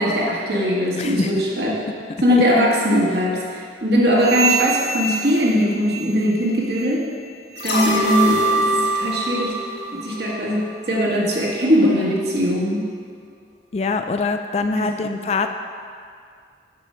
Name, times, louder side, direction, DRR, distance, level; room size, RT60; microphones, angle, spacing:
voice 1, 0.0-1.7 2.2-7.0 7.6-8.6 8.9-9.5 9.9-12.9 14.7-15.2, equal, 60° right, -4 dB, 1.7 m, -20 dB
voice 2, 1.0-1.3 13.7-15.5, left 4 dB, 35° left, 7 dB, 0.3 m, -23 dB
sound 1, 4.2-6.4 6.6-7.0 7.5-7.7 8.3-8.5 9.2-9.3 10.0-10.1, right 5 dB, 25° right, 0.8 m, -27 dB
sound 2, 7.6-10.7 11.0-11.1, right 1 dB, 80° left, 2.3 m, -22 dB
7.4 x 6.4 x 5.6 m, 2.2 s
head